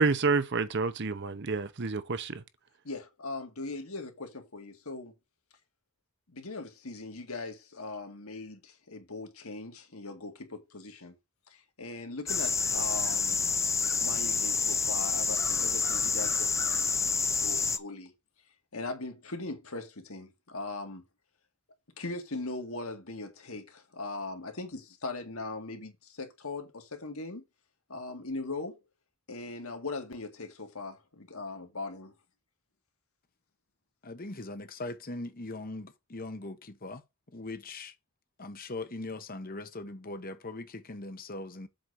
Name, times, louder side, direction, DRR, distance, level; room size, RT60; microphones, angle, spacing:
voice 1, 0.0-2.4, right 4 dB, 50° right, 0.8 m, -28 dB
voice 2, 2.8-5.1 6.3-11.2 11.5-13.4 14.0-17.1 17.4-18.1 18.7-21.0 22.0-27.4 27.9-28.8 29.3-32.1, left 3 dB, 70° left, 2.1 m, -40 dB
sound 1, 12.3-17.8, left 5 dB, 15° left, 0.5 m, -28 dB
voice 3, 34.0-37.0 37.3-37.9 38.4-41.7, left 2 dB, 40° left, 1.1 m, -40 dB
7.8 x 4.1 x 6.3 m
head